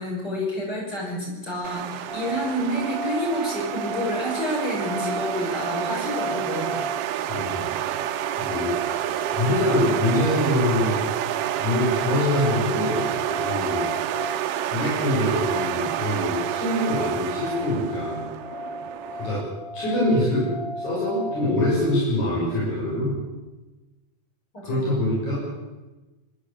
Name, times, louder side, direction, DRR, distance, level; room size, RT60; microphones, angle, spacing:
voice 1, 0.0-6.8 24.5-24.8, equal, 30° left, -3 dB, 7.2 m, -29 dB
sound 1, 1.6-19.4, right 12 dB, 70° right, 1.5 m, -29 dB
sound 2, 2.1-21.7, equal, 50° left, 7.9 m, -36 dB
voice 2, 7.3-7.7 8.4-8.7 9.3-11.1 11.6-13.9 14.7-18.3 19.2-19.4 19.7-20.5 20.8-23.2 24.6-25.3, left 1 dB, 70° left, -6 dB, 7.7 m, -24 dB
24.5 x 12.5 x 8.6 m, 1.1 s
omnidirectional pair, 3.5 m